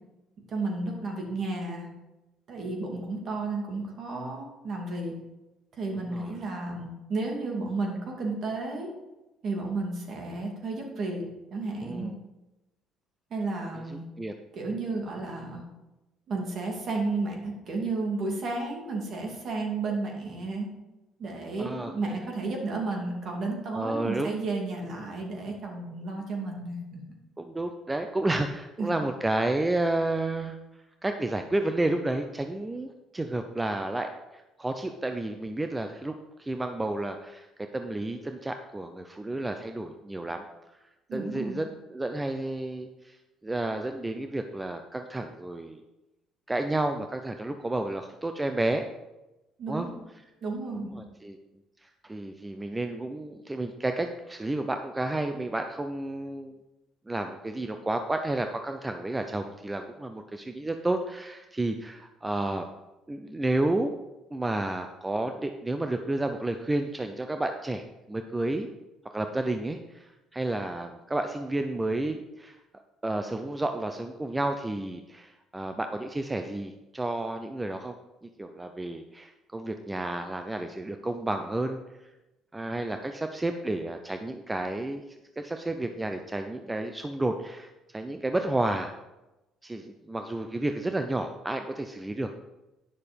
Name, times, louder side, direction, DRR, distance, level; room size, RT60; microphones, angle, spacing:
voice 1, 0.5-1.9 2.5-5.1 5.7-8.9 9.4-11.2 11.5-12.1 13.3-14.0 14.5-15.6 16.3-20.7 21.2-27.0 28.8-28.9 41.1-41.6 49.6-49.9 50.4-51.0, right 3 dB, 50° right, 1 dB, 2.6 m, -32 dB
voice 2, 5.9-6.3 11.8-12.1 13.7-14.3 21.6-22.2 23.7-24.3 27.4-30.6 31.0-37.5 37.7-40.4 40.7-40.8 41.1-43.2 43.4-45.8 46.5-48.8 49.7-49.9 50.9-51.4 51.8-56.6 57.1-62.7 63.1-63.9 64.3-68.7 69.1-72.6 73.0-77.9 78.4-82.1 82.5-85.0 85.4-88.9 89.6-92.3, right 2 dB, 15° right, 6 dB, 0.6 m, -31 dB
9.9 x 6.5 x 5.3 m, 1.0 s
cardioid pair, 100°, 0 cm